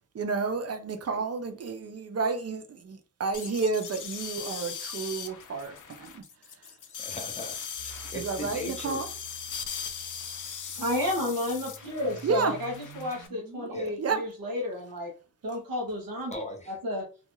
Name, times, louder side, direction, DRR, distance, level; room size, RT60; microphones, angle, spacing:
voice 1, 0.1-6.2 8.1-9.1 12.2-12.6 14.0-14.2, right 4 dB, 45° right, 0.5 m, -31 dB
sound 1, 3.3-13.3, left 7 dB, 60° left, 0.5 m, -39 dB
voice 2, 6.9-9.0 13.7-13.9 16.3-16.8, left 1 dB, 20° left, 0.8 m, -39 dB
sound 2, 7.7-13.7, right 2 dB, 65° right, 1.0 m, -49 dB
voice 3, 10.7-15.1 15.4-16.3 16.7-17.0, left 1 dB, 85° right, 0.8 m, -31 dB
2.4 x 2.2 x 3.0 m
wide cardioid pair, 90°, 34 cm